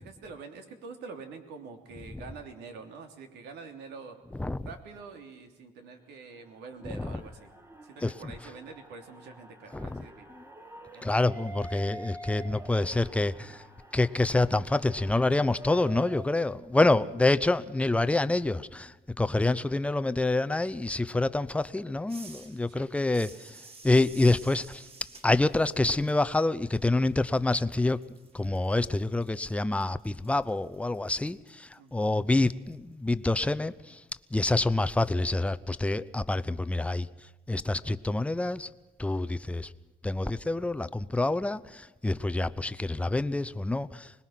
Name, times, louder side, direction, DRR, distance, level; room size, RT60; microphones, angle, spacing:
voice 1, 0.0-4.2 4.6-7.5 7.8-10.3 10.9-11.2 17.0-17.3 22.7-22.9 31.8-32.1 42.3-42.7, right 4 dB, 80° right, 3.2 m, -46 dB
sound 1, 6.4-16.2, right 1 dB, 15° right, 1.8 m, -47 dB
voice 2, 6.9-7.2 8.0-8.1 9.7-10.1 10.4-10.5 11.0-13.6 13.9-23.6 23.8-24.8 25.2-28.0 28.3-34.0 34.3-37.1 37.5-38.7 39.0-39.7 40.0-44.1, left 2 dB, 5° left, 0.7 m, -27 dB
sound 2, 22.1-27.6 27.9-32.7, right 3 dB, 35° right, 4.0 m, -53 dB
25.0 x 20.5 x 5.9 m
cardioid pair, 110°, 17 cm